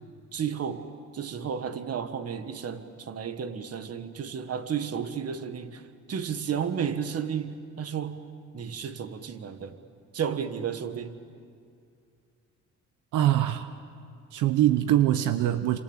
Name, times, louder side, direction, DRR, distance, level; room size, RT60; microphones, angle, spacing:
voice 1, 0.3-0.8 1.1-5.8 6.1-8.2 8.5-9.7 10.1-11.2, right 7 dB, 55° right, 9 dB, 1.7 m, -32 dB
voice 2, 13.1-13.7 14.3-15.8, right 13 dB, 90° right, 10 dB, 0.9 m, -23 dB
27.5 x 26.5 x 7.3 m, 2.3 s
cardioid pair, 90°, 30 cm